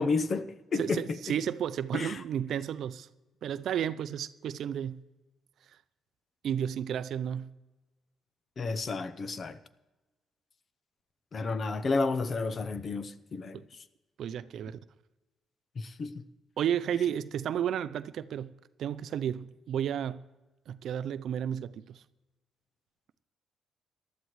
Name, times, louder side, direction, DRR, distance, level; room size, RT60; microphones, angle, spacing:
voice 1, 0.0-1.2 1.9-2.2 8.6-9.6 11.3-13.6 15.8-16.2, left 3 dB, 45° left, 0.7 m, -31 dB
voice 2, 0.8-3.1 3.4-5.0 6.4-7.5 13.5-13.6 14.2-14.8 16.6-18.5 18.8-20.2 20.7-22.0, right 9 dB, 70° right, 0.5 m, -32 dB
18.5 x 12.5 x 3.2 m
cardioid pair, 90°, 0 cm